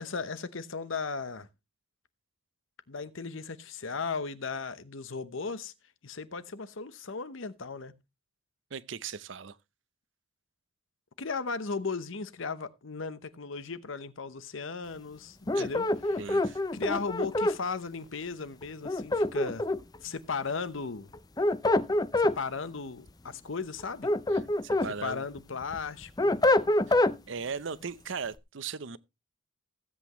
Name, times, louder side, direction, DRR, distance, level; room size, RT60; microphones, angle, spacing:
voice 1, 0.0-1.5 2.9-5.7 6.0-7.9 11.2-16.2 16.7-19.7 20.0-21.1 22.2-24.1 25.0-26.3, left 4 dB, 65° left, 0.9 m, -36 dB
voice 2, 8.7-9.6 15.5-15.7 16.2-16.6 24.6-25.2 26.9-29.0, right 5 dB, 60° right, 0.6 m, -38 dB
Glass Squeaking, 15.5-17.6 18.9-20.0 21.1-22.4 23.8-24.9 25.4-27.2, left 2 dB, 20° left, 0.5 m, -26 dB
16.0 x 8.2 x 3.1 m
head